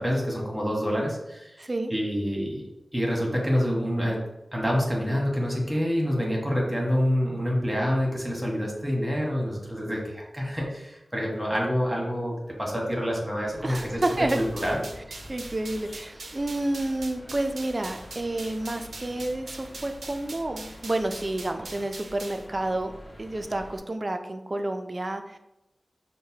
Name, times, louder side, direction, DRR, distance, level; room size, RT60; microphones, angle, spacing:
voice 1, 0.0-2.6 2.9-4.2 4.5-12.3 12.6-14.0 14.3-14.8, equal, 5° right, -2 dB, 1.2 m, -27 dB
voice 2, 1.6-1.9 13.6-14.4 15.3-22.9 23.2-25.4, right 1 dB, 35° right, 6 dB, 0.4 m, -30 dB
sound 1, 13.4-23.8, equal, 30° left, 1.2 m, -46 dB
sound 2, 13.7-22.5, right 3 dB, 90° right, 0.5 m, -43 dB
6.3 x 2.1 x 2.8 m, 0.94 s
wide cardioid pair, 85°, 0 cm